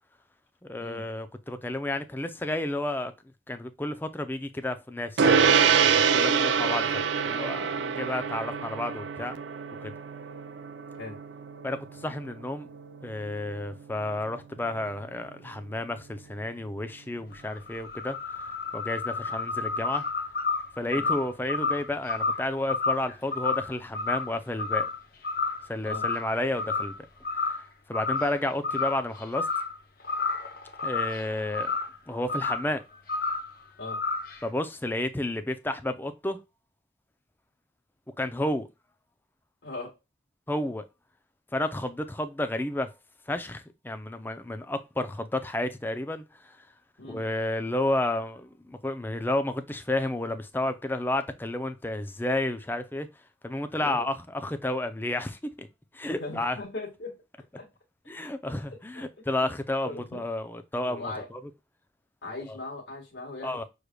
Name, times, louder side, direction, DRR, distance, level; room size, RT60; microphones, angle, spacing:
voice 1, 0.6-3.1 3.5-9.4 9.8-9.9 11.6-12.7 13.0-18.5 18.7-20.0 20.8-24.9 25.7-26.9 27.9-29.5 30.8-31.7 32.1-32.8 34.4-36.4 38.2-38.7 40.5-40.8 41.5-42.9 43.3-46.6 47.0-53.1 53.4-55.7 55.9-56.6 58.1-61.4 63.4-63.6, left 1 dB, 10° left, 0.5 m, -31 dB
Gong, 5.2-14.9, right 6 dB, 80° right, 0.5 m, -26 dB
sound 1, 17.3-25.0 25.2-25.6 25.9-27.0 27.2-27.6 27.9-28.4 28.6-29.8 30.0-32.0 32.3-32.7 33.1-33.5 33.9-34.4, left 4 dB, 55° left, 0.8 m, -30 dB
voice 2, 39.6-40.0 47.0-47.2 53.8-54.1 56.1-57.2 57.5-57.7 58.4-58.5 58.9-59.0 59.4-59.5 59.8-60.2 60.8-61.3 62.2-63.6, left 2 dB, 70° left, 1.7 m, -39 dB
6.4 x 3.3 x 2.3 m
head